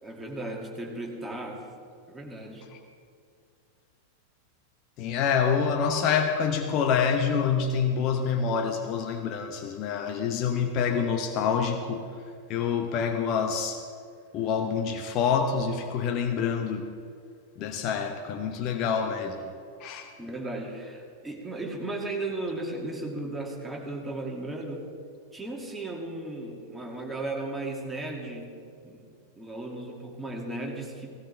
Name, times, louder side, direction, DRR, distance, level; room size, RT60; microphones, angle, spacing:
voice 1, 0.0-1.7 2.1-2.7 20.2-24.9 25.3-28.5 28.8-29.0 29.4-31.1, right 2 dB, 10° right, -1 dB, 2.4 m, -35 dB
voice 2, 5.0-12.1 12.5-13.8 14.3-16.9 17.6-19.5 19.8-20.1, left 6 dB, 40° left, 5 dB, 0.9 m, -27 dB
17.5 x 16.5 x 3.4 m, 2.3 s
figure-of-eight pair, 90°, 0 cm